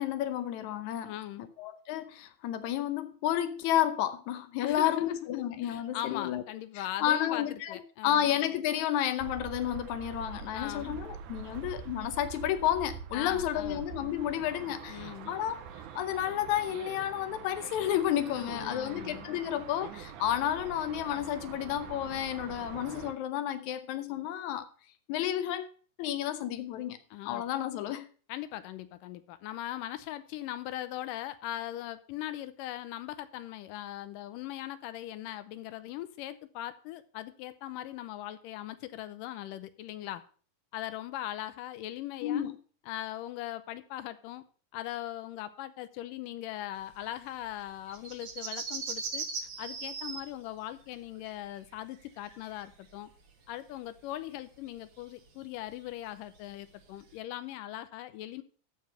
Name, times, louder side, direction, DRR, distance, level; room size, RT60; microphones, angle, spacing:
voice 1, 0.0-1.1 1.4-6.4 6.8-15.6 16.0-24.7 25.1-27.0 27.3-28.1 42.2-42.6, left 11 dB, 70° left, 2.0 m, -31 dB
voice 2, 1.1-1.4 4.6-8.4 10.5-11.0 13.1-13.9 14.9-15.3 18.4-19.3 27.1-27.4 28.3-40.2 40.7-42.5 42.9-44.4 44.7-49.3 49.6-53.1 53.5-58.4, left 13 dB, 90° left, 2.4 m, -40 dB
sound 1, 9.2-23.1, right 8 dB, 75° right, 2.2 m, -44 dB
sound 2, 46.9-53.3 53.5-57.2, right 5 dB, 50° right, 1.6 m, -40 dB
13.5 x 4.8 x 5.5 m
omnidirectional pair, 3.8 m